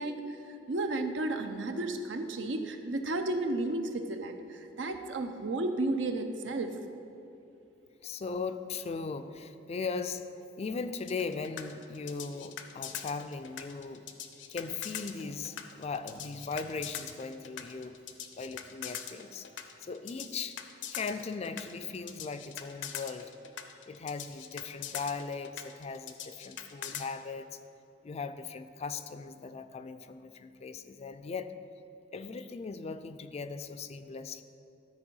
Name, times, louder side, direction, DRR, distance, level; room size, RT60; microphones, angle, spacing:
voice 1, 0.0-6.8, right 2 dB, 85° right, 6 dB, 0.7 m, -33 dB
voice 2, 8.0-14.0 14.5-18.0 18.4-19.5 19.8-20.6 20.9-23.3 23.9-27.6 28.0-31.5 32.1-34.4, left 4 dB, 35° left, 11 dB, 0.3 m, -38 dB
sound 1, 11.1-27.1, left 9 dB, 75° left, 0.6 m, -42 dB
12.5 x 4.4 x 5.5 m, 2.7 s
head